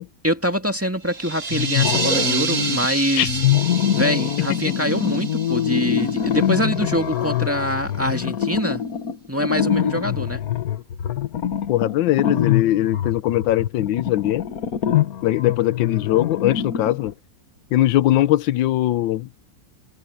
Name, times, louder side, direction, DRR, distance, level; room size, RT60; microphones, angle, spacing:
voice 1, 0.2-3.4 3.9-8.8 9.3-10.4, equal, 5° right, 2.0 m, -24 dB
sound 1, 1.0-6.7, right 4 dB, 80° right, 3.1 m, -28 dB
sound 2, 1.5-2.9 3.2-17.1, left 10 dB, 55° left, 1.6 m, -24 dB
voice 2, 11.7-14.5 15.2-17.1 17.7-19.3, left 14 dB, 85° left, 1.4 m, -20 dB
omnidirectional pair, 2.0 m